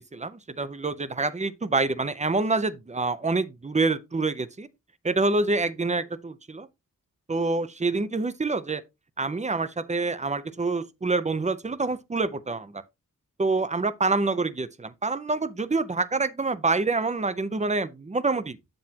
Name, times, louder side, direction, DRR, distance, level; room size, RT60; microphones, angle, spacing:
voice 1, 0.0-4.7 5.0-6.7 7.3-8.8 9.2-12.8 13.4-18.6, right 3 dB, 20° right, 0.6 m, -26 dB
7.7 x 7.3 x 2.8 m
wide cardioid pair, 90°, 33 cm